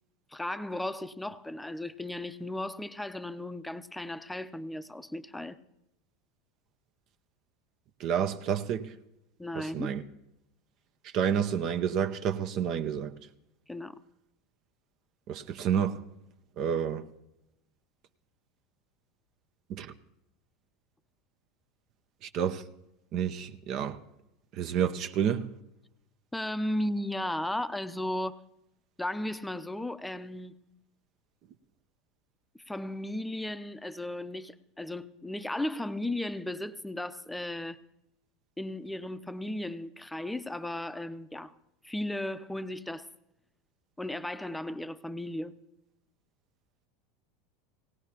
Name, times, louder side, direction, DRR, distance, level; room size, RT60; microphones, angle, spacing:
voice 1, 0.3-5.6 9.4-9.9 13.7-13.9 26.3-28.4 29.0-30.7 32.5-37.8 38.6-41.6 41.8-43.1 44.0-45.5, left 1 dB, 5° left, 0.6 m, -35 dB
voice 2, 8.0-8.9 9.6-10.0 11.0-13.1 15.3-16.0 16.6-17.0 19.7-19.9 22.2-22.6 23.1-24.0 24.5-25.5, right 8 dB, 55° right, 0.7 m, -29 dB
18.0 x 17.5 x 2.9 m
hypercardioid pair, 95°, 0 cm